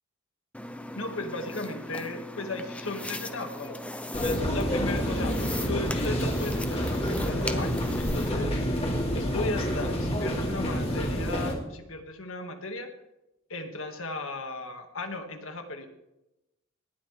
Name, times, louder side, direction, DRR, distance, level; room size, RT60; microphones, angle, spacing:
sound 1, 0.5-8.3, left 1 dB, 5° left, 0.7 m, -38 dB
voice 1, 0.9-3.8 4.2-8.6 9.1-12.9 13.5-15.9, left 2 dB, 80° left, 5 dB, 2.0 m, -36 dB
sound 2, 4.1-11.5, equal, 30° left, 3.0 m, -28 dB
19.0 x 12.0 x 3.4 m, 0.92 s
head